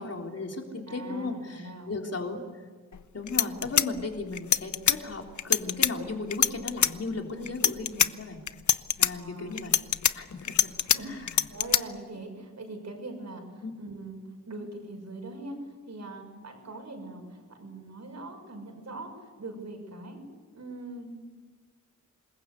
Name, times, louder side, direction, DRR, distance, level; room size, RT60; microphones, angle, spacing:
voice 1, 0.0-2.4 3.1-8.4 9.0-9.8 10.1-10.7 11.0-11.4 13.6-13.7, left 3 dB, 55° left, 2 dB, 3.6 m, -36 dB
voice 2, 0.9-1.9 7.4-7.5 9.1-9.7 10.8-15.6 15.9-19.1 19.4-20.2 20.5-21.1, right 2 dB, 65° right, 4 dB, 6.5 m, -42 dB
sound 1, 2.9-3.0 3.3-5.0 5.4-5.9 6.3-6.9 7.5-8.1 8.5-9.1 9.6-11.0 11.3-11.8, left 8 dB, 70° left, 0.8 m, -23 dB
27.0 x 21.0 x 8.4 m, 1.5 s
wide cardioid pair, 115°, 30 cm